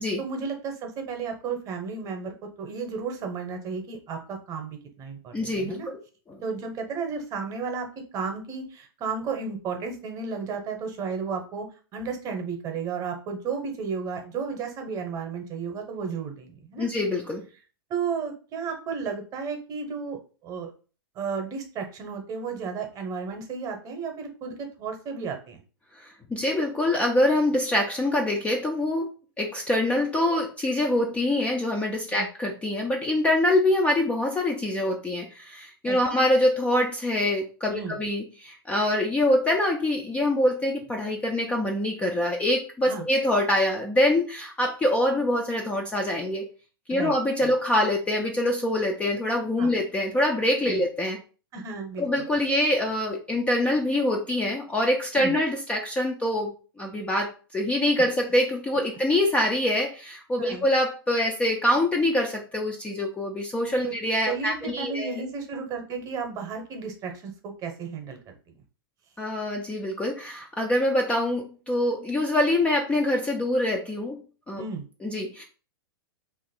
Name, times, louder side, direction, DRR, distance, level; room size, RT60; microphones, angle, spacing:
voice 1, 0.0-5.9 6.4-7.9 8.1-11.7 11.9-16.9 17.9-20.7 21.2-25.6 32.1-32.3 35.8-36.0 37.7-38.0 42.9-43.1 46.9-47.5 49.6-49.7 50.7-50.8 51.5-52.2 55.1-55.4 58.0-58.1 60.4-60.6 63.8-63.9 64.3-68.2 74.6-74.8, right 5 dB, 30° right, 4 dB, 0.8 m, -33 dB
voice 2, 5.3-6.0 6.3-6.4 16.8-17.4 26.0-29.1 29.4-46.4 46.9-51.2 52.0-56.5 56.8-65.2 69.2-74.2 74.5-74.6 75.0-75.4, left 1 dB, 10° left, 1 dB, 0.4 m, -25 dB
2.9 x 2.5 x 4.1 m, 0.37 s
hypercardioid pair, 135°, 13 cm